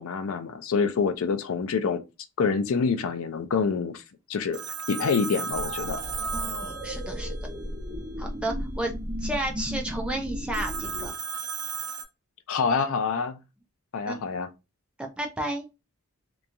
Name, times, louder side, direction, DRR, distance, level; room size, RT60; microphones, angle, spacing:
voice 1, 0.0-2.0 2.4-4.0 4.3-4.6 4.9-6.0 12.5-13.4 13.9-14.5, left 5 dB, 65° left, 0.4 m, -26 dB
Telephone, 4.5-7.6 10.5-12.0, right 5 dB, 75° right, 0.7 m, -35 dB
sound 1, 5.5-11.1, equal, 45° right, 1.0 m, -34 dB
voice 2, 6.3-7.3 8.2-11.1 14.1-14.2 15.0-15.7, right 1 dB, 5° right, 0.4 m, -32 dB
2.9 x 2.3 x 2.4 m
head